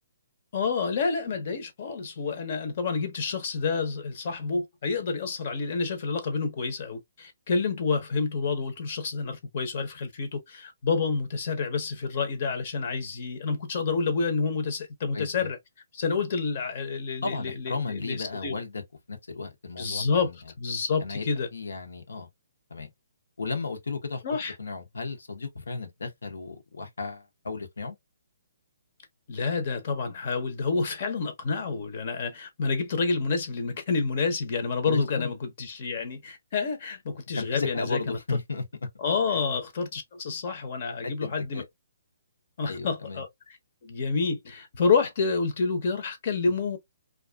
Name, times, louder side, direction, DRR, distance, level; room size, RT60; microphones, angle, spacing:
voice 1, 0.5-15.6 15.9-18.6 19.8-21.5 24.2-24.5 29.3-38.2 39.0-41.6 42.6-43.3 43.8-46.8, left 4 dB, 45° left, 0.7 m, -29 dB
voice 2, 15.1-15.5 17.2-18.8 19.1-20.4 21.0-21.2 21.5-22.3 22.7-22.9 23.4-28.0 34.9-35.3 37.4-38.6 41.0-41.6 42.6-43.2, left 4 dB, 85° left, 0.8 m, -34 dB
2.4 x 2.3 x 2.2 m
hypercardioid pair, 155°, 0 cm